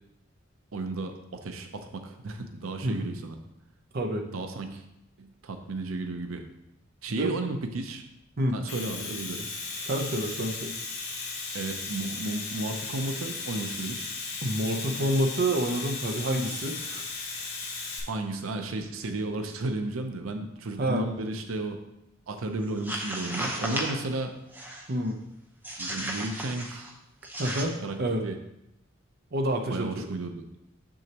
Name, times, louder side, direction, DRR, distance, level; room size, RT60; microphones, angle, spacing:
voice 1, 0.7-3.4 4.3-4.8 5.2-6.4 7.0-8.0 8.5-9.5 11.5-14.1 18.1-21.8 22.3-24.3 25.8-26.9 27.8-28.4 29.7-30.4, right 2 dB, 90° right, 6 dB, 0.6 m, -33 dB
voice 2, 3.9-4.3 7.2-7.3 8.4-8.6 9.8-10.7 14.4-17.1 20.8-21.1 24.9-25.2 27.3-28.2 29.3-30.1, right 1 dB, 50° right, 3 dB, 0.7 m, -28 dB
Domestic sounds home sounds, 8.5-18.0, left 4 dB, 90° left, 1.9 m, -36 dB
sound 1, 22.7-24.0 24.5-24.9 25.6-26.9 27.2-27.6, right 1 dB, 10° right, 0.9 m, -34 dB
7.0 x 6.3 x 2.9 m, 0.84 s
head